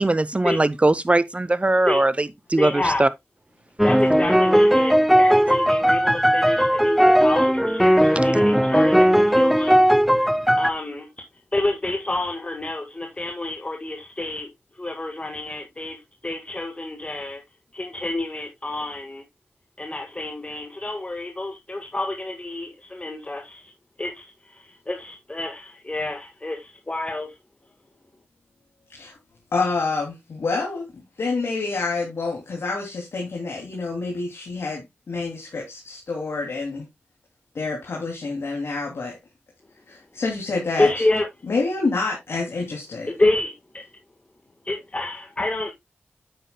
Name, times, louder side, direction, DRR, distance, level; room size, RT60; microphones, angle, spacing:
voice 1, 0.0-3.1, right 2 dB, 30° right, 0.7 m, -20 dB
voice 2, 2.6-3.1 3.8-9.9 10.6-11.1 11.5-14.5 14.8-16.0 16.2-17.4 17.7-19.2 19.8-23.6 24.0-27.3 40.8-41.3 43.1-43.9 44.6-45.7, left 2 dB, 30° left, 1.6 m, -28 dB
sound 1, 3.8-10.7, equal, ahead, 0.4 m, -17 dB
voice 3, 29.5-36.8 37.5-39.2 39.9-40.9 41.5-43.1, left 3 dB, 80° left, 2.7 m, -27 dB
9.4 x 8.5 x 2.2 m
cardioid pair, 55°, 4 cm